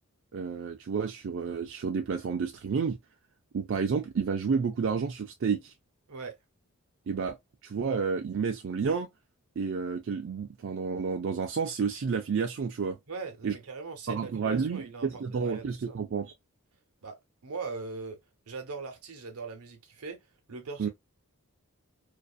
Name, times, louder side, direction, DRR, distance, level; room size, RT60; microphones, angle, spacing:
voice 1, 0.3-3.0 3.5-5.7 7.1-7.4 7.6-9.1 9.6-13.0 13.4-13.5 14.1-16.3 20.8-20.9, right 5 dB, 55° right, 0.4 m, -30 dB
voice 2, 13.1-16.0 17.0-18.2 18.5-20.2 20.5-20.9, right 4 dB, 85° right, 0.8 m, -40 dB
2.6 x 2.3 x 2.3 m
head